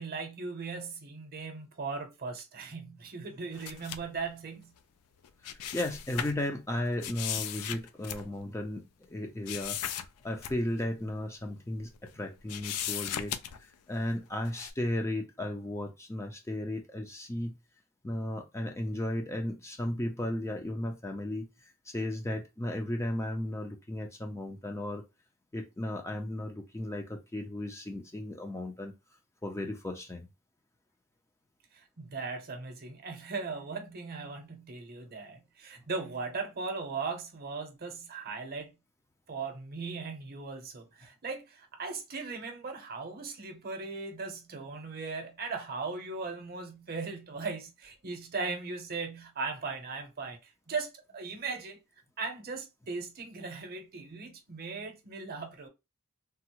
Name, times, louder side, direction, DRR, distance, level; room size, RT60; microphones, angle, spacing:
voice 1, 0.0-4.7 31.7-38.7 39.3-51.8 52.2-55.7, right 4 dB, 45° right, 0.7 m, -38 dB
sound 1, 3.5-4.2 5.2-6.4 7.0-8.6 9.5-10.1 10.4-10.6 11.0-11.1 11.8-12.2 12.5-13.7 14.4-14.7, left 10 dB, 80° left, 0.4 m, -37 dB
voice 2, 5.4-17.5 18.0-25.0 25.5-28.9 29.4-30.3, left 1 dB, 10° left, 0.4 m, -35 dB
3.4 x 2.0 x 2.9 m
head